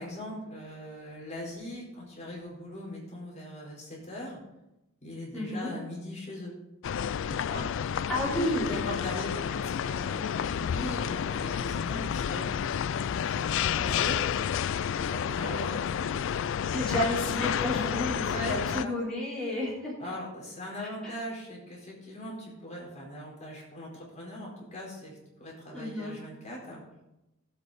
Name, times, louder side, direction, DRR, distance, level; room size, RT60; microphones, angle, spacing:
voice 1, 0.0-4.4 5.0-6.5 7.2-7.7 8.7-12.6 13.0-16.6 18.3-19.0 20.0-26.8, left 1 dB, 35° left, -3 dB, 4.4 m, -41 dB
voice 2, 5.3-5.7 7.4-7.6 8.1-9.1 13.6-14.1 15.3-15.8 16.7-19.9 20.8-21.2 25.7-26.1, left 1 dB, 5° left, -8 dB, 3.6 m, -32 dB
sound 1, 6.8-18.9, left 8 dB, 65° left, 0.3 m, -30 dB
18.0 x 8.3 x 4.1 m, 0.92 s
head